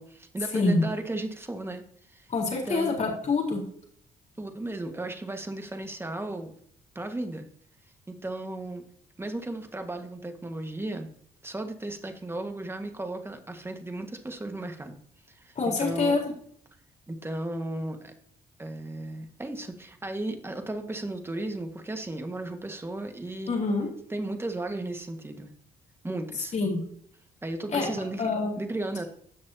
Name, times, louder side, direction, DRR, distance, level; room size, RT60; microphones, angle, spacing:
voice 1, 0.0-1.8 2.1-2.3 2.6-3.0 4.4-6.5 6.9-7.5 8.1-8.9 9.2-11.1 11.4-15.0 15.3-16.2 17.1-18.1 18.6-23.6 24.1-25.5 26.0-26.5 27.4-28.3 28.6-29.0, right 2 dB, 15° right, 5 dB, 1.7 m, -35 dB
voice 2, 0.5-0.8 2.3-3.6 15.6-16.2 23.5-23.9 26.5-26.8 27.7-27.9 28.2-28.5, left 3 dB, 50° left, 0 dB, 4.1 m, -26 dB
16.0 x 6.2 x 2.9 m, 0.64 s
cardioid pair, 90°, 16 cm